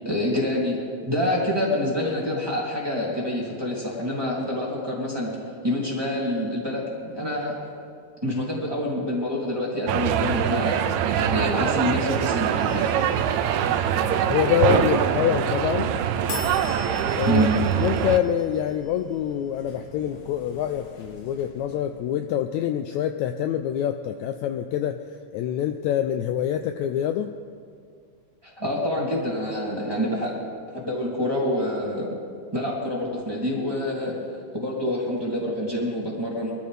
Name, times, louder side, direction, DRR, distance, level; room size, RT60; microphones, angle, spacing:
voice 1, 0.0-0.8 1.0-5.3 5.6-7.5 8.2-10.8 11.2-12.9 17.3-17.6 28.4-30.4 30.7-32.1 32.5-34.2 34.5-36.5, left 1 dB, 10° right, -5 dB, 2.2 m, -26 dB
sound 1, 9.9-18.2, right 9 dB, 80° right, 1.8 m, -23 dB
sound 2, 12.6-14.6 16.3-22.3, left 5 dB, 60° left, 1.8 m, -43 dB
voice 2, 14.3-15.9 17.2-17.5 17.8-25.0 25.3-27.3, left 10 dB, 80° left, 7 dB, 1.7 m, -25 dB
23.0 x 13.5 x 3.4 m, 2.3 s
omnidirectional pair, 3.6 m